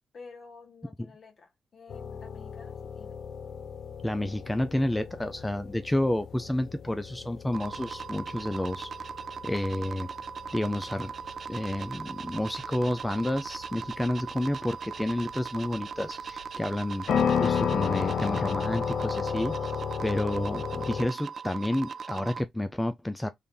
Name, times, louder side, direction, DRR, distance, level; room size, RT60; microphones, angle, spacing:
voice 1, 0.1-3.2, left 4 dB, 55° left, 1.5 m, -51 dB
sound 1, 1.9-21.1, left 7 dB, 75° left, 0.5 m, -34 dB
voice 2, 4.0-8.9 9.4-10.1 10.5-11.1 11.5-17.1 17.4-19.7 20.0-23.3, left 1 dB, 10° left, 0.4 m, -30 dB
sound 2, 7.5-22.4, right 6 dB, 55° right, 0.3 m, -39 dB
3.4 x 2.5 x 3.8 m
cardioid pair, 65°, 0 cm